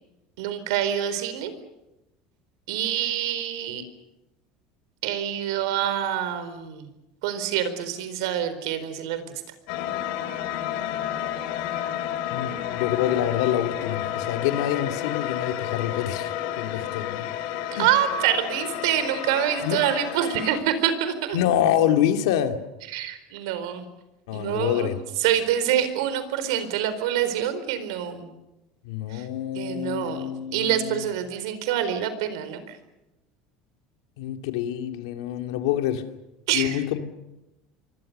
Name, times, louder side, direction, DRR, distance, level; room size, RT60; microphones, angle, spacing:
voice 1, 0.4-1.5 2.7-3.8 5.0-6.9 7.2-9.2 17.7-21.4 22.9-23.9 24.3-24.9 25.2-28.3 29.1-29.3 29.5-32.6 36.5-36.8, right 10 dB, 85° right, 11 dB, 4.3 m, -26 dB
sound 1, 9.7-20.6, left 11 dB, 70° left, 3.2 m, -31 dB
voice 2, 12.3-16.3 16.6-17.3 17.7-17.9 19.6-19.8 21.3-22.6 24.3-25.0 28.8-31.1 34.2-36.0 36.5-37.0, left 11 dB, 90° left, 6 dB, 2.4 m, -26 dB
26.5 x 24.5 x 6.8 m, 0.96 s
cardioid pair, 155°, 3 cm